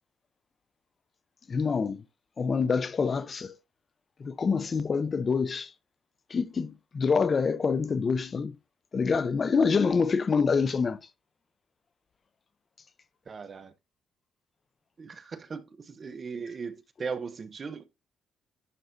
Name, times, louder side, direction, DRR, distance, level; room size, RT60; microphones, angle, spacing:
voice 1, 1.5-2.0 2.4-3.5 4.2-5.7 6.3-8.5 8.9-11.0, left 5 dB, 40° left, 0.6 m, -26 dB
voice 2, 13.3-13.7 15.0-17.9, right 5 dB, 40° right, 0.8 m, -38 dB
11.0 x 5.7 x 2.6 m
cardioid pair, 90°, 0 cm